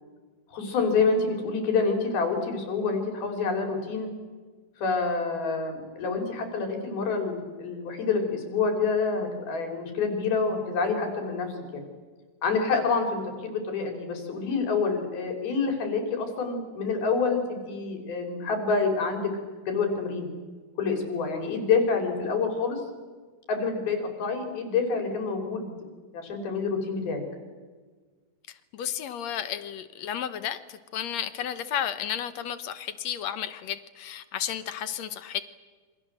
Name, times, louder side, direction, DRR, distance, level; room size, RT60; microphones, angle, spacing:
voice 1, 0.5-4.1 4.8-11.8 12.4-19.3 19.7-20.3 20.8-22.8 23.5-25.9 26.1-27.2, left 4 dB, 85° left, 4 dB, 6.0 m, -27 dB
voice 2, 28.7-35.4, left 9 dB, 65° left, 12 dB, 1.8 m, -33 dB
28.0 x 26.0 x 7.8 m, 1.4 s
omnidirectional pair, 4.2 m